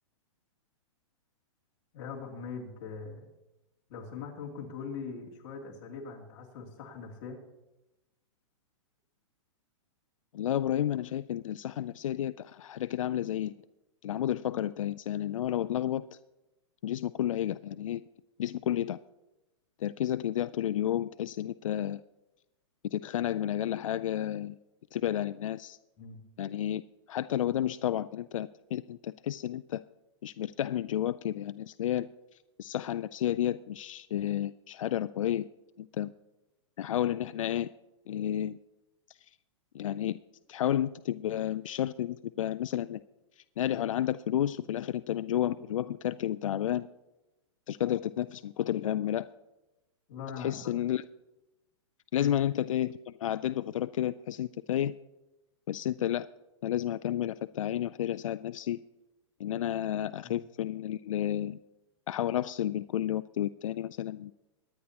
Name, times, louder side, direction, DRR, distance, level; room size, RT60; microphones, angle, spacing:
voice 1, 1.9-3.3 3.9-7.4 26.0-26.2 50.1-50.7 52.2-52.3 60.2-60.4, left 5 dB, 40° left, -2 dB, 2.8 m, -41 dB
voice 2, 10.3-13.5 14.0-16.1 16.8-18.0 18.4-19.0 19.8-22.0 22.8-24.6 24.9-25.8 26.4-26.8 27.1-29.8 30.2-32.1 32.6-35.5 35.8-36.1 36.8-37.7 38.1-38.6 39.7-40.2 40.5-43.0 43.6-46.9 47.7-49.3 50.4-51.0 52.1-55.0 55.7-56.3 56.6-58.8 59.4-61.6 62.1-64.3, left 11 dB, 85° left, 14 dB, 0.4 m, -31 dB
23.0 x 9.7 x 2.9 m, 0.99 s
hypercardioid pair, 150°, 16 cm